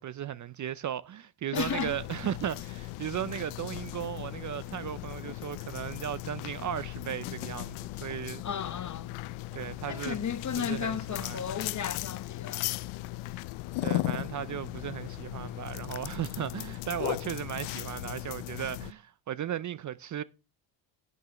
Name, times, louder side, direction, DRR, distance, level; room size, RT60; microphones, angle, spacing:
voice 1, 0.0-7.8 8.0-8.4 9.5-10.2 10.6-11.4 13.8-20.2, right 10 dB, 40° right, 0.5 m, -36 dB
sound 1, 1.5-18.9, left 18 dB, 85° left, 0.6 m, -37 dB
voice 2, 1.5-2.0 8.4-9.1 9.9-12.7, left 7 dB, 35° left, 1.0 m, -34 dB
13.5 x 9.4 x 3.0 m
cardioid pair, 90°, 48 cm